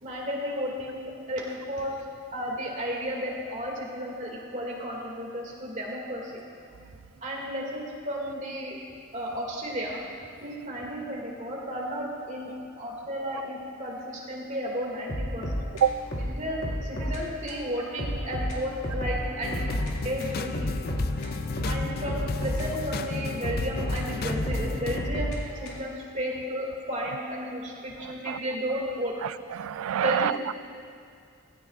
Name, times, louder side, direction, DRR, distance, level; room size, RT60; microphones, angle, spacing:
voice 1, 0.0-2.0 2.3-6.3 7.2-8.8 9.1-10.0 10.4-15.5 16.2-19.6 20.0-20.7 21.6-25.3 25.6-29.1 30.0-30.4, equal, 35° right, -3 dB, 2.3 m, -33 dB
sound 1, 15.1-17.2 17.5-17.6 18.0-19.9 20.2-23.1 23.4-26.0, equal, 65° left, 2.1 m, -32 dB
sound 2, 19.4-25.1, left 3 dB, 45° left, 0.4 m, -33 dB
voice 2, 28.0-28.4 29.2-30.5, right 9 dB, 90° right, 16 dB, 0.3 m, -27 dB
16.5 x 16.5 x 2.5 m, 2.3 s
head